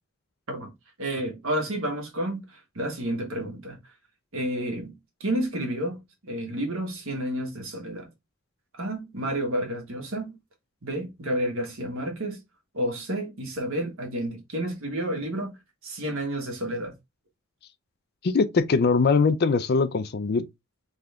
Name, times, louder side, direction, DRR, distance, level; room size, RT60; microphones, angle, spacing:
voice 1, 1.0-3.8 4.3-4.9 5.2-8.1 8.8-10.4 10.8-12.4 12.7-15.6 15.8-16.9, right 1 dB, 65° right, 1.5 m, -30 dB
voice 2, 18.2-20.4, left 4 dB, 45° left, 0.4 m, -22 dB
3.5 x 3.4 x 3.5 m
head